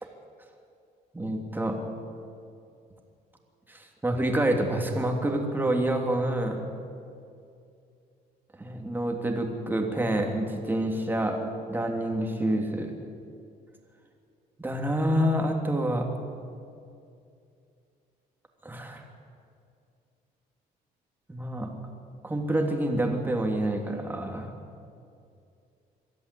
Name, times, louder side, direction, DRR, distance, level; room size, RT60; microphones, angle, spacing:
voice 1, 1.1-1.8 3.7-6.6 8.6-11.4 11.7-12.9 14.6-16.1 18.6-19.0 21.3-21.7 22.2-24.5, right 1 dB, 10° right, 2 dB, 3.0 m, -27 dB
23.5 x 13.0 x 8.5 m, 2.5 s
cardioid pair, 110°, 17 cm